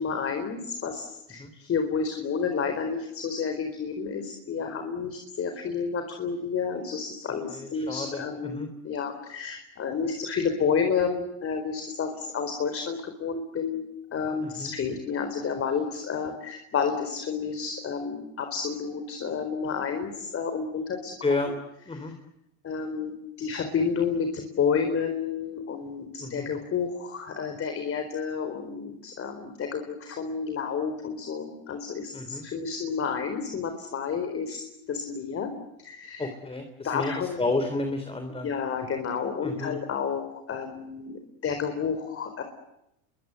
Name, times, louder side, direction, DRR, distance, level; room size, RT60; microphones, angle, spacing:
voice 1, 0.0-13.8 14.1-21.1 21.5-21.6 22.6-23.1 23.4-35.5 35.8-36.3 36.8-37.4 38.4-42.4, left 6 dB, 35° left, 6 dB, 4.3 m, -30 dB
voice 2, 7.5-8.7 14.4-14.7 21.2-21.5 21.9-22.1 26.2-26.5 32.1-32.4 36.2-38.5 39.4-39.8, left 3 dB, 15° left, 7 dB, 3.3 m, -31 dB
29.0 x 23.0 x 8.1 m, 0.85 s
supercardioid pair, 115°, 41 cm